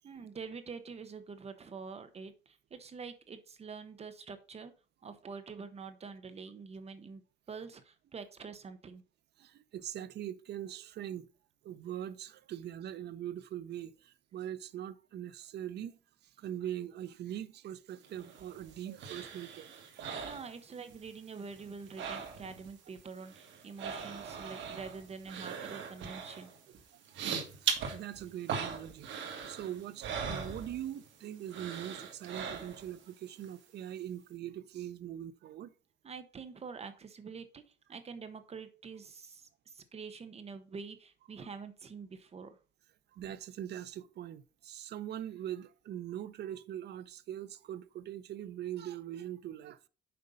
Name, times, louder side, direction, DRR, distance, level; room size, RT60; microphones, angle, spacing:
voice 1, 0.0-4.7 5.0-7.2 7.5-9.0 20.2-26.5 36.0-42.6, right 5 dB, 35° right, 0.9 m, -46 dB
voice 2, 9.4-11.3 11.6-16.0 16.4-20.1 27.1-27.3 27.6-35.7 43.1-49.8, right 11 dB, 60° right, 0.7 m, -42 dB
sound 1, 18.0-21.1 21.4-22.7 23.0-31.1 31.5-33.0 33.4-33.5, right 6 dB, 75° right, 1.9 m, -40 dB
6.8 x 5.2 x 5.3 m
cardioid pair, 140°, 19 cm